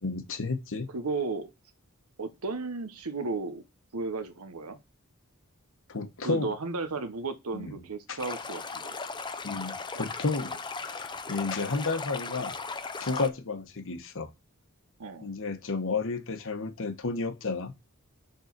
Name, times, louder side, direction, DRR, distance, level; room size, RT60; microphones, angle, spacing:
voice 1, 0.0-0.9 5.9-6.5 7.5-7.8 8.1-8.2 9.4-12.5 13.0-14.3 15.2-17.7, left 3 dB, 60° left, 1.0 m, -32 dB
voice 2, 0.9-1.5 2.2-3.6 3.9-4.8 6.2-9.0 15.0-15.3, right 3 dB, 80° right, 1.0 m, -34 dB
Stream, 8.2-13.3, left 4 dB, 20° left, 0.6 m, -37 dB
6.5 x 3.9 x 6.0 m
head